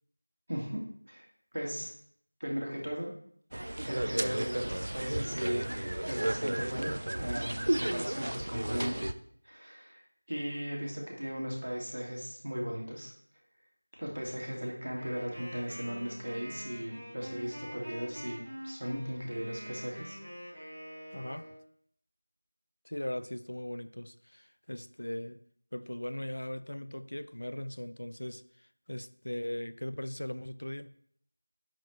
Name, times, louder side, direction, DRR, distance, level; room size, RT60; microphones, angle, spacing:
voice 1, 0.5-0.8 1.1-1.3 1.5-1.9 2.4-3.1 3.8-5.7 6.1-6.9 7.2-9.0 9.4-10.0 10.3-13.1 13.9-18.4 18.6-20.2, equal, 75° right, -1 dB, 2.2 m, -37 dB
sound 1, 3.5-9.1, right 1 dB, 45° right, 0.3 m, -33 dB
Wind instrument woodwind instrument, 14.9-21.6, equal, 5° right, 1.1 m, -45 dB
voice 2, 21.1-21.5 22.8-25.4 25.7-30.9, left 1 dB, 75° left, 14 dB, 0.4 m, -39 dB
10.5 x 4.3 x 3.1 m, 0.63 s
figure-of-eight pair, 180°, 0 cm